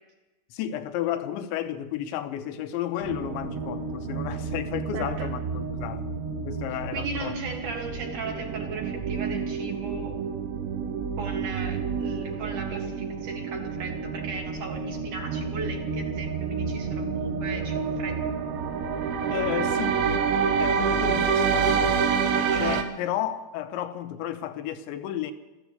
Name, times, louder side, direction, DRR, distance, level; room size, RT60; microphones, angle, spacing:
voice 1, 0.5-6.1 6.4-7.4 19.3-20.1 20.6-22.0 22.5-25.3, left 11 dB, 90° left, 3.2 m, -32 dB
sound 1, 3.0-22.8, right 6 dB, 75° right, 3.2 m, -28 dB
voice 2, 4.9-5.3 6.9-10.1 11.2-18.2 22.4-22.7, right 4 dB, 55° right, 2.7 m, -37 dB
14.5 x 14.5 x 6.8 m
omnidirectional pair, 5.3 m